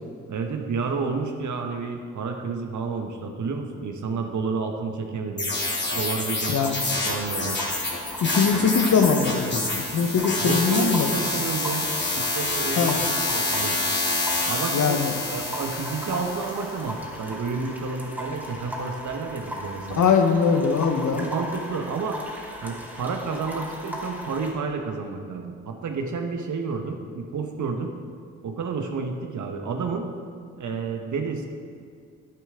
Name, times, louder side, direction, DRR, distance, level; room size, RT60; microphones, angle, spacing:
voice 1, 0.3-5.5 5.9-7.6 10.4-11.9 12.1-13.8 14.5-15.0 15.3-20.1 21.1-22.2 22.6-27.9 28.4-30.1 30.6-31.5, right 4 dB, 55° right, 4 dB, 1.2 m, -30 dB
sound 1, 5.4-16.8, left 2 dB, 30° left, 2.6 m, -27 dB
sound 2, 6.6-24.5, left 1 dB, 5° right, 3.0 m, -37 dB
voice 2, 8.2-11.1 12.8-13.0 14.7-15.1 20.0-21.3, left 5 dB, 55° left, 6 dB, 1.1 m, -21 dB
10.5 x 10.5 x 3.7 m, 2.1 s
hypercardioid pair, 40°, 35 cm